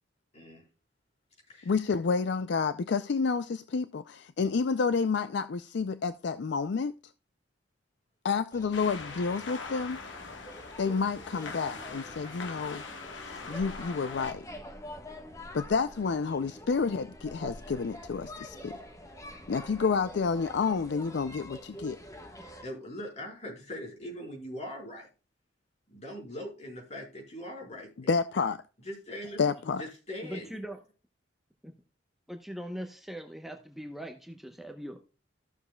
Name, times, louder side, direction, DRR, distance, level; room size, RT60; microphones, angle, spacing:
voice 1, 0.3-0.6 1.5-1.8 22.6-25.1 25.9-27.9 28.8-29.4 29.8-30.5, left 1 dB, 40° left, 4.3 m, -41 dB
voice 2, 1.7-6.9 8.2-10.0 10.8-12.8 13.5-14.5 15.5-18.8 19.5-22.0 28.1-28.6 29.4-29.8, left 5 dB, 65° left, 0.4 m, -29 dB
sound 1, 8.5-22.6, left 1 dB, 20° left, 1.3 m, -46 dB
sound 2, 8.7-14.3, left 4 dB, 85° left, 1.4 m, -42 dB
voice 3, 30.2-30.8 31.6-31.7 32.3-35.0, equal, ahead, 0.8 m, -41 dB
14.5 x 6.8 x 2.2 m
head